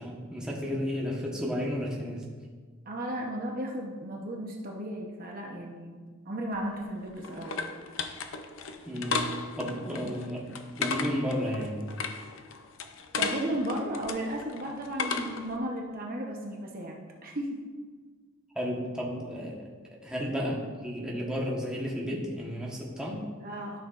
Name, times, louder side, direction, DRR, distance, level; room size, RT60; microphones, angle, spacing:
voice 1, 0.0-2.3 8.8-9.3 9.6-10.4 10.7-11.8 18.5-19.7 20.0-23.2, equal, 5° right, -4 dB, 1.2 m, -32 dB
voice 2, 2.9-7.6 13.2-17.6 23.4-23.8, right 1 dB, 45° right, -1 dB, 0.9 m, -35 dB
sound 1, 6.6-15.6, left 5 dB, 65° left, 0.6 m, -35 dB
13.0 x 6.1 x 2.5 m, 1.5 s
head